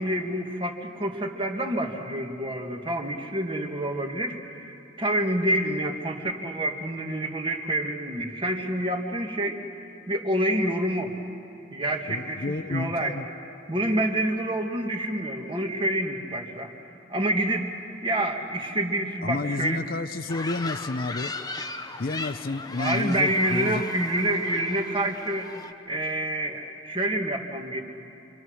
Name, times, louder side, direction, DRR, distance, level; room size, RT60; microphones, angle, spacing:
voice 1, 0.0-11.1 11.7-13.2 13.7-16.7 17.1-17.7 18.0-19.9 22.8-25.5 25.9-27.8, right 1 dB, 25° right, 3 dB, 1.8 m, -27 dB
voice 2, 12.1-13.3 13.8-13.9 19.2-21.3 22.0-23.8, left 3 dB, 50° left, 10 dB, 0.7 m, -30 dB
sound 1, 20.3-25.7, left 3 dB, 20° left, 0.9 m, -37 dB
28.0 x 24.5 x 6.4 m, 2.8 s
head